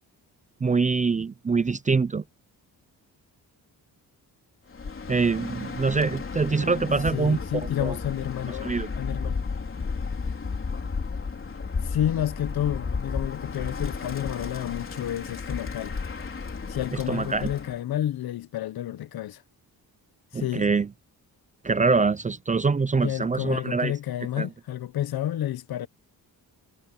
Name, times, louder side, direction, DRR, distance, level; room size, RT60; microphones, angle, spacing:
voice 1, 0.6-2.2 5.1-7.4 7.8-8.0 8.6-8.9 16.9-17.5 20.3-20.9 21.6-23.9 24.4-24.5, right 4 dB, 20° right, 0.4 m, -24 dB
Bird, 4.7-17.8, left 4 dB, 35° left, 4.3 m, -33 dB
voice 2, 7.1-9.5 11.8-16.0 16.7-19.4 20.3-20.7 23.0-25.9, left 12 dB, 70° left, 0.9 m, -30 dB
wide cardioid pair, 140°, 38 cm